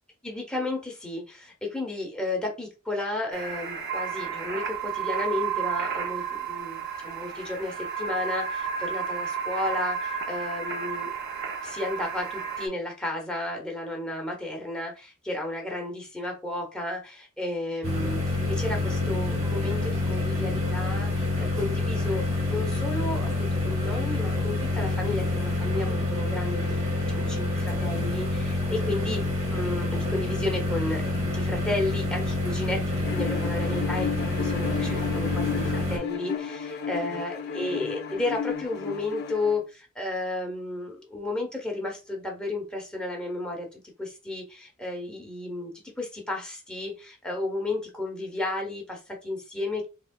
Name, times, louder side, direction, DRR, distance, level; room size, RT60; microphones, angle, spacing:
voice 1, 0.2-11.1 11.6-29.2 29.5-32.8 33.1-49.9, left 2 dB, 5° left, -1 dB, 0.8 m, -33 dB
sound 1, 3.3-12.7, right 7 dB, 50° right, 0.6 m, -32 dB
sound 2, 17.8-36.0, left 2 dB, 30° right, 1.0 m, -27 dB
Bowed string instrument, 33.0-39.6, left 6 dB, 50° left, 0.5 m, -33 dB
3.5 x 3.1 x 2.2 m, 0.30 s
head